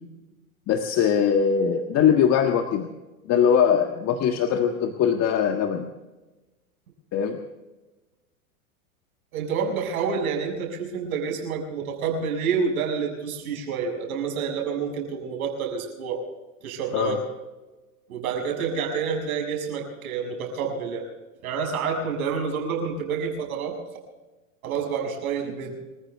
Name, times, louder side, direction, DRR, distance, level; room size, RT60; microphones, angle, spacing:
voice 1, 0.7-2.9 3.2-5.9 7.1-7.4 16.9-17.2, left 7 dB, 35° left, 5 dB, 1.6 m, -21 dB
voice 2, 9.3-16.2 16.6-17.2 18.1-21.0 21.4-23.8 24.6-25.7, right 6 dB, 70° right, 3 dB, 6.6 m, -28 dB
27.0 x 14.5 x 3.5 m, 1.1 s
hypercardioid pair, 105°, 44 cm